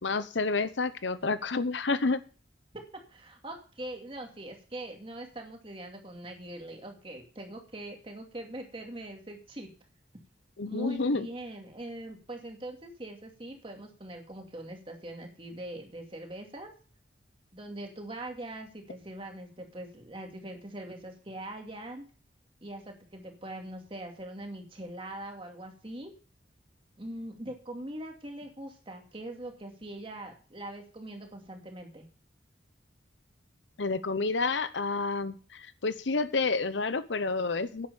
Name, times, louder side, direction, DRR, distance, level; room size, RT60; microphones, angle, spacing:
voice 1, 0.0-2.2 10.6-11.3 33.8-37.9, left 3 dB, 80° left, 13 dB, 0.9 m, -29 dB
voice 2, 3.1-9.7 10.6-16.7 17.5-22.1 22.6-26.1 27.0-32.1, right 1 dB, 30° right, 3 dB, 2.4 m, -42 dB
10.5 x 8.1 x 6.9 m, 0.39 s
head